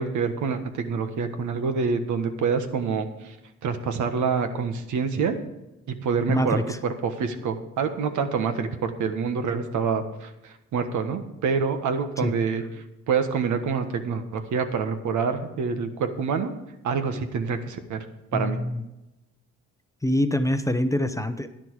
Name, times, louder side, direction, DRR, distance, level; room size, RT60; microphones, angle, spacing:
voice 1, 0.0-3.3 3.6-5.4 5.9-12.6 13.1-16.5 16.8-18.0 18.3-18.6, right 5 dB, 75° right, 8 dB, 1.4 m, -26 dB
voice 2, 6.3-6.8 12.2-12.3 18.3-18.8 20.0-21.5, left 1 dB, 10° left, 9 dB, 0.7 m, -25 dB
10.5 x 10.5 x 4.8 m, 0.97 s
cardioid pair, 90°, 30 cm